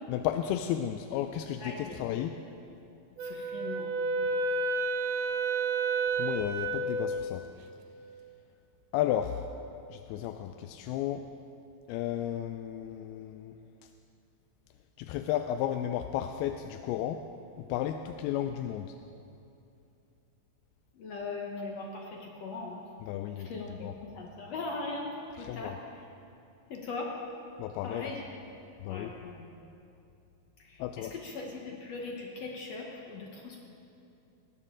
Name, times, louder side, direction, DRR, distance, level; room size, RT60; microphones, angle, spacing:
voice 1, 0.1-2.3 6.2-7.4 8.9-9.4 9.9-11.3 11.9-13.5 15.0-17.2 17.6-19.0 23.0-23.5 23.8-23.9 25.4-25.8 27.6-28.1 28.8-29.1 30.8-31.2, left 11 dB, 85° left, 7 dB, 2.5 m, -33 dB
voice 2, 1.6-2.1 3.2-3.9 21.0-22.8 23.4-25.7 26.7-27.1 27.8-28.4 28.9-29.5 30.7-33.6, left 3 dB, 65° left, 0 dB, 1.7 m, -40 dB
Wind instrument woodwind instrument, 3.2-7.2, right 3 dB, 75° right, 2.0 m, -30 dB
19.0 x 16.5 x 3.8 m, 2.7 s
omnidirectional pair, 4.4 m